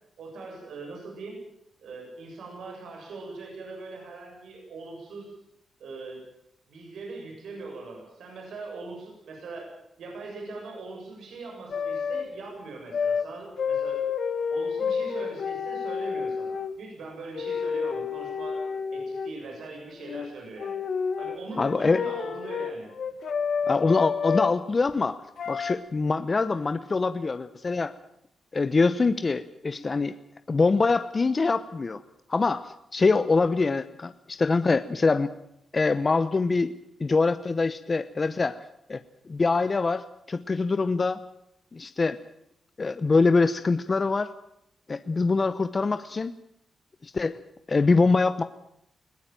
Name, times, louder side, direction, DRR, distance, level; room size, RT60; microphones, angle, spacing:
voice 1, 0.2-1.4 1.8-5.3 5.8-6.2 6.7-9.7 10.0-14.0 14.5-20.8 21.2-22.9, right 3 dB, 80° right, 0 dB, 7.3 m, -41 dB
sound 1, 11.7-12.2 12.9-13.3 13.6-16.7 17.3-19.3 20.0-20.3 20.6-24.5 25.4-25.7, left 6 dB, 65° left, 1.5 m, -29 dB
voice 2, 21.6-22.0 23.7-25.2 25.5-27.9 28.5-30.2 30.5-32.0 32.3-35.3 35.7-36.7 37.0-38.6 38.9-39.0 39.3-41.2 41.7-42.2 42.8-44.3 44.9-46.3 47.0-47.4 47.7-48.4, left 3 dB, 35° left, 12 dB, 0.9 m, -24 dB
21.0 x 17.0 x 9.1 m, 0.79 s
cardioid pair, 80°, 0 cm